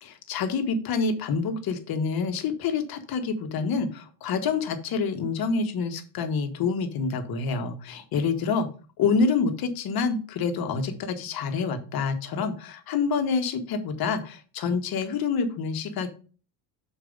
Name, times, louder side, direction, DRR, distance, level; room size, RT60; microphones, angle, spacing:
voice 1, 0.0-8.7 9.0-16.1, left 5 dB, 50° left, 7 dB, 1.4 m, -27 dB
6.6 x 4.6 x 5.1 m, 0.38 s
cardioid pair, 125°, 47 cm